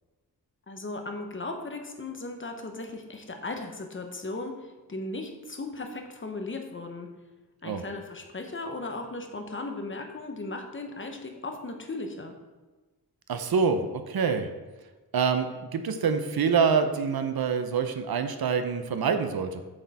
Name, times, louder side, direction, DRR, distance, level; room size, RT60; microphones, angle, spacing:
voice 1, 0.7-7.1 7.6-12.3, left 2 dB, 30° left, 4 dB, 0.9 m, -37 dB
voice 2, 13.3-14.5 15.1-15.5 15.7-19.6, right 6 dB, 70° right, 8 dB, 0.7 m, -26 dB
7.8 x 6.5 x 4.1 m, 1.2 s
wide cardioid pair, 180°, 38 cm